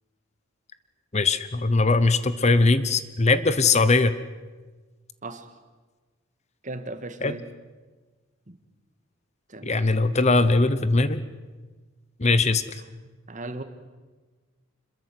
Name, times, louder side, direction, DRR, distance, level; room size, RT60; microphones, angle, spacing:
voice 1, 1.1-4.1 7.2-7.3 9.6-11.2 12.2-12.8, left 3 dB, 35° left, 13 dB, 0.9 m, -20 dB
voice 2, 5.2-5.5 6.6-7.5 8.5-8.6 9.5-10.0 12.7-13.6, right 2 dB, 40° right, 9 dB, 1.8 m, -38 dB
26.5 x 22.0 x 7.9 m, 1.3 s
head